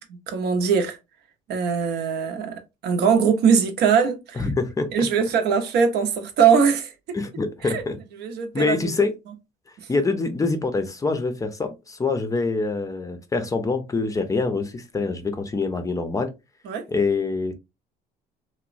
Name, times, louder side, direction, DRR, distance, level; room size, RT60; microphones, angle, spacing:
voice 1, 0.1-1.0 1.5-4.4 4.9-6.9 7.6-7.8 8.2-8.8 16.7-16.8, right 6 dB, 75° right, 0.6 m, -21 dB
voice 2, 4.4-5.1 7.1-8.0 8.5-9.1 9.9-16.3 16.9-17.5, left 3 dB, 20° left, 0.5 m, -25 dB
2.9 x 2.1 x 2.4 m
cardioid pair, 110°, 17 cm